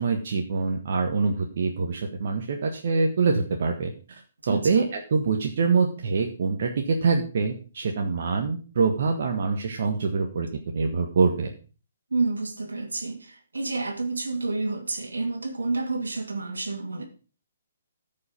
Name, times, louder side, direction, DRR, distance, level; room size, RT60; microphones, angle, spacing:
voice 1, 0.0-10.5 10.7-11.5, right 4 dB, 55° right, 1.5 m, -25 dB
voice 2, 4.4-4.9 12.1-17.0, right 3 dB, 75° right, 2.4 m, -29 dB
14.0 x 5.7 x 5.3 m
figure-of-eight pair, 130°, 0 cm